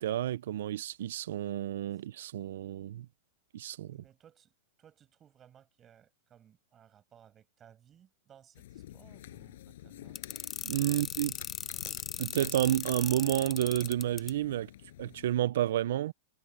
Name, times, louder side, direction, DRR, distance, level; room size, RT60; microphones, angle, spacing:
voice 1, 0.0-3.1 3.5-4.0 10.6-11.3 12.2-14.7 15.0-16.1, right 12 dB, 65° right, 0.5 m, -30 dB
voice 2, 3.9-10.2 10.9-11.1, right 9 dB, 20° right, 6.2 m, -60 dB
sound 1, 8.5-15.3, left 14 dB, 65° left, 5.3 m, -49 dB
sound 2, 10.2-14.3, left 7 dB, 15° left, 0.4 m, -37 dB
supercardioid pair, 170°, 0 cm